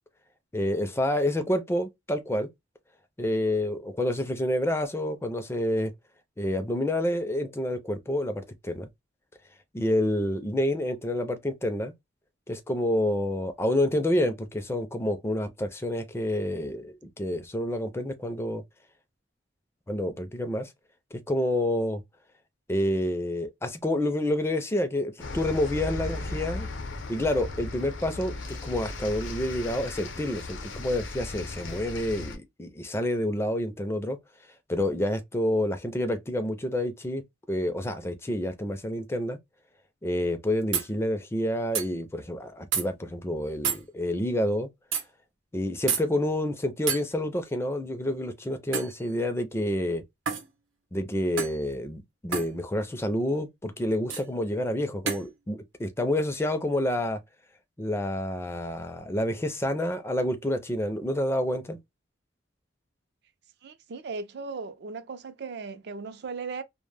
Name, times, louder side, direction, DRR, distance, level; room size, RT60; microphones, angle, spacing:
voice 1, 0.5-2.5 3.2-5.9 6.4-8.9 9.7-11.9 12.5-18.6 19.9-20.7 21.1-22.0 22.7-26.7 27.1-34.2 34.7-37.2 37.5-39.4 40.0-44.7 45.5-50.0 50.9-57.2 57.8-61.8, left 1 dB, 15° left, 0.4 m, -28 dB
sound 1, 25.2-32.4, left 2 dB, 75° left, 0.6 m, -36 dB
sound 2, 40.7-40.9 41.7-41.9 42.7-42.8 43.6-43.8 44.9-45.0 45.9-46.0 46.9-47.0 48.7-49.0 50.3-50.5 51.4-51.6 52.3-52.5 54.1-54.3 55.1-55.3, right 6 dB, 90° right, 0.7 m, -29 dB
voice 2, 63.6-66.6, right 4 dB, 60° right, 0.4 m, -37 dB
2.1 x 2.0 x 3.2 m
head